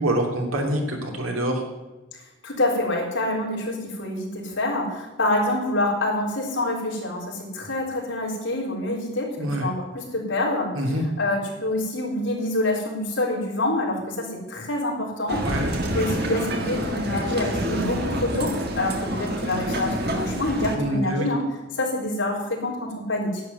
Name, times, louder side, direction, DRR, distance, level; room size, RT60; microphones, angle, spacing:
voice 1, 0.0-1.6 9.4-9.7 10.7-11.0 15.4-15.7 20.7-21.3, right 1 dB, 90° right, 1 dB, 2.9 m, -25 dB
voice 2, 2.4-10.7 11.2-15.5 15.9-21.4 21.7-23.4, left 1 dB, 65° left, -2 dB, 4.0 m, -26 dB
Male speech man speaking, 15.3-20.8, equal, 50° right, 1.7 m, -27 dB
11.0 x 7.8 x 9.5 m, 1.1 s
head